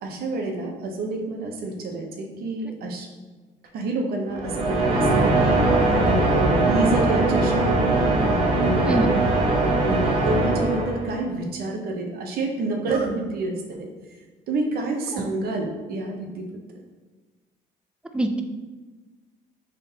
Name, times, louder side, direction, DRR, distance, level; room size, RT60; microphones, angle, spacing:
voice 1, 0.0-3.1 3.7-5.7 6.3-8.1 8.6-9.2 9.6-13.9 14.5-16.5, right 2 dB, 65° right, 2 dB, 0.7 m, -28 dB
voice 2, 2.7-2.8 8.8-9.1 15.1-15.2 18.1-18.4, right 1 dB, 5° right, 6 dB, 0.3 m, -24 dB
sound 1, 4.3-11.2, right 2 dB, 35° right, 1.2 m, -21 dB
3.8 x 3.6 x 2.8 m, 1.3 s
cardioid pair, 110°, 17 cm